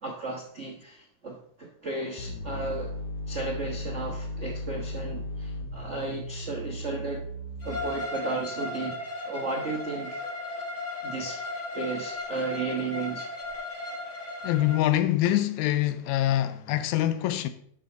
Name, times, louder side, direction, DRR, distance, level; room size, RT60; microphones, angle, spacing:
voice 1, 0.0-2.9 3.3-7.2 7.6-9.0 9.2-10.3 11.0-11.4 11.7-13.3, right 3 dB, 85° right, 0.6 m, -34 dB
sound 1, 2.2-8.2, left 1 dB, 65° left, 1.5 m, -36 dB
Bowed string instrument, 7.6-14.8, left 2 dB, 40° left, 1.0 m, -36 dB
voice 2, 14.4-17.5, left 13 dB, 80° left, 1.9 m, -25 dB
11.0 x 6.3 x 4.0 m
omnidirectional pair, 3.5 m